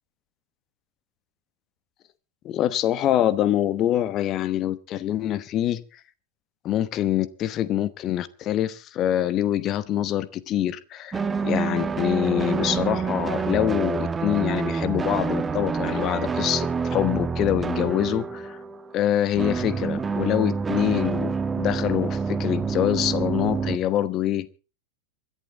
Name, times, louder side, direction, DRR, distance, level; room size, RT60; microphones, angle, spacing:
voice 1, 2.4-5.8 6.6-18.6 18.9-24.5, left 12 dB, 35° left, 1.0 m, -25 dB
sound 1, 11.1-19.1 19.3-23.8, right 5 dB, 15° right, 1.2 m, -27 dB
26.5 x 11.5 x 3.6 m
figure-of-eight pair, 90°, 0 cm